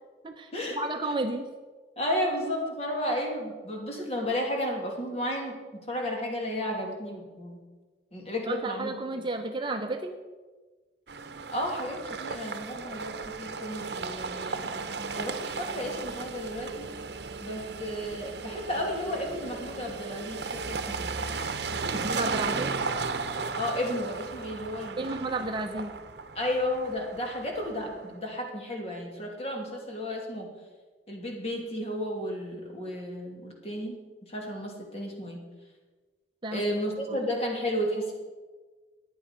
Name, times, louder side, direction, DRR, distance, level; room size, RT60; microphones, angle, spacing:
voice 1, 0.2-1.5 8.5-10.1 21.9-22.7 25.0-25.9 36.4-36.6 37.1-37.2, right 2 dB, 25° right, 5 dB, 0.8 m, -32 dB
voice 2, 2.0-5.6 5.9-7.6 8.1-9.2 11.5-14.7 15.1-16.9 17.4-21.1 21.9-22.4 23.5-25.2 26.3-30.5 31.1-34.0 34.3-35.4 36.5-38.1, equal, 35° left, 0 dB, 2.7 m, -33 dB
sound 1, 11.1-28.1, right 4 dB, 75° right, 0.9 m, -35 dB
14.5 x 10.5 x 5.2 m, 1.3 s
head